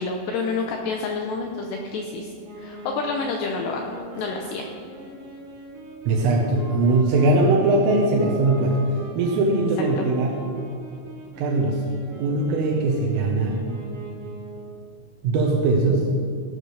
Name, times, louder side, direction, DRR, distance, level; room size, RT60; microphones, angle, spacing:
voice 1, 0.0-3.8 4.2-4.7 10.0-10.1, left 4 dB, 85° left, 2 dB, 2.4 m, -28 dB
Wind instrument woodwind instrument, 2.4-14.9, right 2 dB, 50° right, 2.6 m, -41 dB
voice 2, 6.1-8.8 9.2-10.4 11.4-11.9 12.2-13.6 15.2-16.1, right 2 dB, 85° right, -2 dB, 3.6 m, -20 dB
15.0 x 11.5 x 3.3 m, 2.5 s
omnidirectional pair, 5.9 m